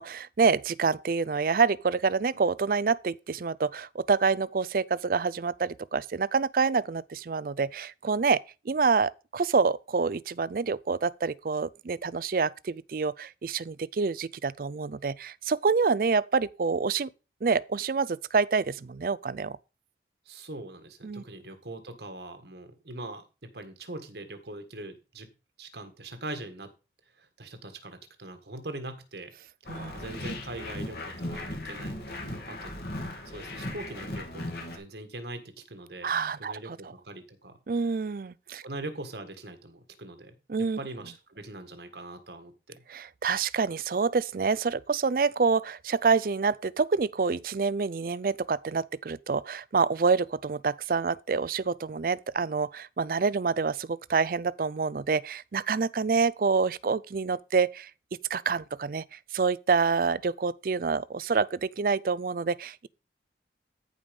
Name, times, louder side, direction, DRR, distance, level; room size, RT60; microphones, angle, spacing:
voice 1, 0.0-17.1 17.4-19.6 21.0-21.2 29.7-29.9 36.0-36.8 37.7-38.6 40.5-40.8 42.9-57.9 58.3-62.9, right 5 dB, 50° right, 0.4 m, -27 dB
voice 2, 20.3-25.3 25.6-26.7 27.2-29.3 29.9-32.7 33.3-36.1 36.4-37.6 38.6-40.4 40.8-42.8, right 2 dB, 65° right, 1.7 m, -42 dB
sound 1, 29.6-34.8, left 1 dB, 60° left, 2.5 m, -37 dB
14.0 x 5.0 x 5.3 m
head